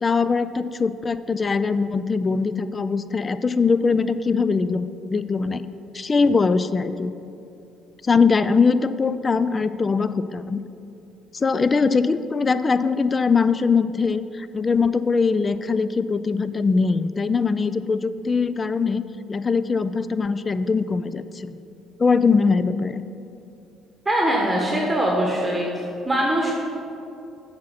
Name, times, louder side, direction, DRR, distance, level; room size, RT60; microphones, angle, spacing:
voice 1, 0.0-5.6 5.9-7.1 8.0-10.6 11.3-19.0 19.3-21.6 22.0-23.1, left 4 dB, 35° left, 14 dB, 0.4 m, -21 dB
voice 2, 24.0-25.7 26.0-26.5, right 1 dB, 15° right, -2 dB, 1.4 m, -22 dB
7.6 x 5.8 x 5.8 m, 2.7 s
hypercardioid pair, 60°, 0 cm